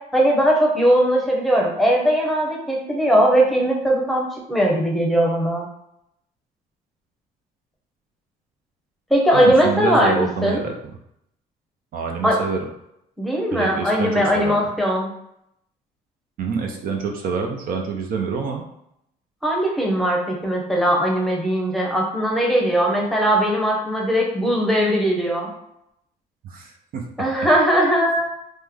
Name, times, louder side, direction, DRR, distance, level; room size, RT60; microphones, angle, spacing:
voice 1, 0.1-5.6 9.1-10.6 12.2-12.4 13.2-15.1 19.4-25.5 27.2-28.3, equal, ahead, -2 dB, 0.7 m, -19 dB
voice 2, 9.3-10.7 11.9-12.6 13.5-14.6 16.4-18.6 26.4-27.0, right 5 dB, 60° right, 2 dB, 0.5 m, -26 dB
3.1 x 2.1 x 3.5 m, 0.78 s
cardioid pair, 110°, 17 cm